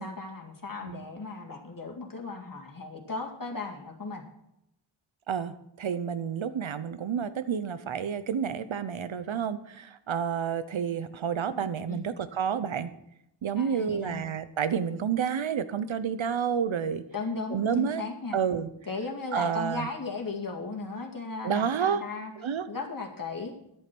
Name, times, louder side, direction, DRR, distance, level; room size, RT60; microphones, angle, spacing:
voice 1, 0.0-4.2 11.5-11.6 11.9-12.0 13.6-14.2 17.1-18.4 18.9-22.3 22.7-23.6, left 3 dB, 45° left, 1 dB, 2.1 m, -36 dB
voice 2, 5.3-12.9 13.4-17.0 17.5-18.0 18.3-18.7 19.3-19.9 21.4-22.0 22.4-22.7, right 7 dB, 85° right, 13 dB, 0.9 m, -30 dB
10.5 x 8.6 x 6.0 m, 0.80 s
wide cardioid pair, 90°, 46 cm